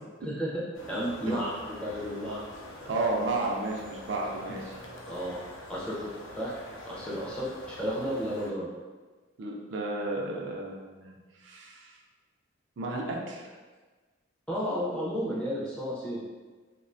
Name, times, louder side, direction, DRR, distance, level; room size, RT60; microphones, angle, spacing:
voice 1, 0.3-1.5 1.8-2.4 5.1-5.4 5.7-6.5 6.8-8.7 14.5-16.2, equal, 5° left, -7 dB, 0.4 m, -32 dB
sound 1, 0.7-8.5, left 1 dB, 70° left, 0.4 m, -45 dB
voice 2, 2.9-4.8 9.4-12.0 12.8-13.5, right 2 dB, 60° right, -1 dB, 0.3 m, -33 dB
2.3 x 2.1 x 2.5 m, 1.4 s
head